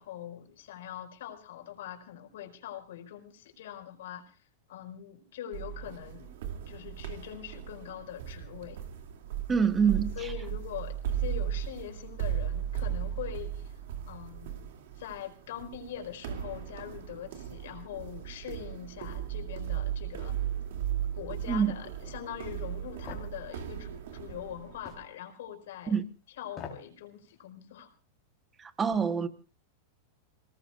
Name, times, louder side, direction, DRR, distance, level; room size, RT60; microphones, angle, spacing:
voice 1, 0.0-4.4 4.7-6.4 6.7-8.8 10.2-13.8 14.1-14.6 14.9-20.4 21.1-25.9 26.4-27.9, left 10 dB, 70° left, 4.8 m, -43 dB
sound 1, 5.5-25.0, right 10 dB, 65° right, 2.6 m, -37 dB
voice 2, 9.5-10.3 21.5-21.7 25.9-26.0 28.6-29.3, right 6 dB, 15° right, 1.1 m, -26 dB
sound 2, 23.1-23.3 24.9-25.1 26.5-26.9 27.3-27.4, left 6 dB, 20° left, 3.9 m, -42 dB
28.5 x 19.0 x 2.5 m
supercardioid pair, 165°, 0 cm